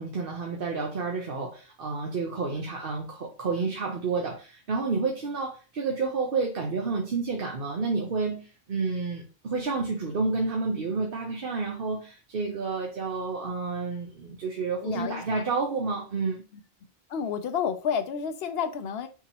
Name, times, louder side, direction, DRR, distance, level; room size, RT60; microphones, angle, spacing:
voice 1, 0.0-16.4, right 4 dB, 60° right, 1.0 m, -30 dB
voice 2, 14.8-15.5 16.5-16.6 17.1-19.1, left 7 dB, 70° left, 0.9 m, -30 dB
6.0 x 2.9 x 2.9 m
omnidirectional pair, 1.1 m